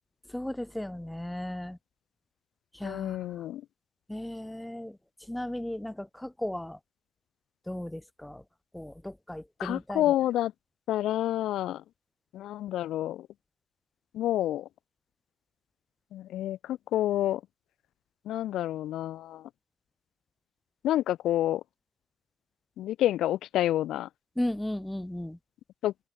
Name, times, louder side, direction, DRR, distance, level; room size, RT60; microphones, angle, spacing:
voice 1, 0.3-1.8 2.7-3.4 4.1-5.0 5.3-6.8 7.7-8.4 8.7-10.1 24.4-25.4, left 1 dB, 5° left, 0.4 m, -35 dB
voice 2, 2.8-3.6 9.6-10.5 10.9-11.8 12.3-13.3 14.1-14.7 16.1-17.4 18.3-19.4 20.8-21.6 22.8-24.1 25.8-25.9, left 13 dB, 80° left, 0.3 m, -28 dB
cardioid pair, 90°, 0 cm